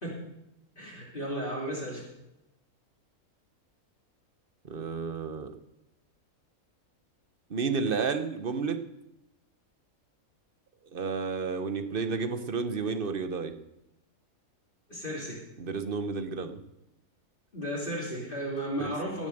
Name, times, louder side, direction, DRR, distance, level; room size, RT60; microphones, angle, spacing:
voice 1, 0.8-2.0 14.9-15.4 17.5-19.3, equal, 35° left, -5 dB, 3.2 m, -34 dB
voice 2, 4.6-5.5 7.5-8.8 10.9-13.5 15.6-16.6 18.8-18.9, right 5 dB, 40° right, 8 dB, 1.1 m, -31 dB
17.0 x 7.2 x 7.8 m, 0.89 s
omnidirectional pair, 1.5 m